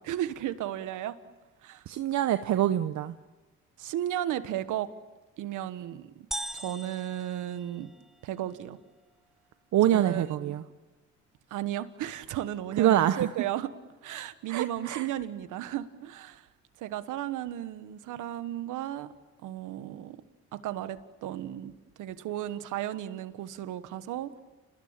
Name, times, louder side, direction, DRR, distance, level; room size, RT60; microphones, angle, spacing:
voice 1, 0.0-1.2 1.6-1.8 3.8-4.9 5.4-6.3 6.5-7.9 8.2-8.8 9.9-10.6 11.5-13.7 14.0-16.5 16.8-19.1 19.4-20.2 20.5-21.7 22.0-24.4, right 12 dB, 85° right, 1.4 m, -34 dB
voice 2, 1.9-3.1 9.7-10.6 12.8-13.3 14.5-15.1, right 12 dB, 70° right, 0.9 m, -25 dB
sound 1, 6.3-8.3, right 1 dB, ahead, 1.2 m, -40 dB
29.5 x 20.0 x 8.9 m
cardioid pair, 90°, 30 cm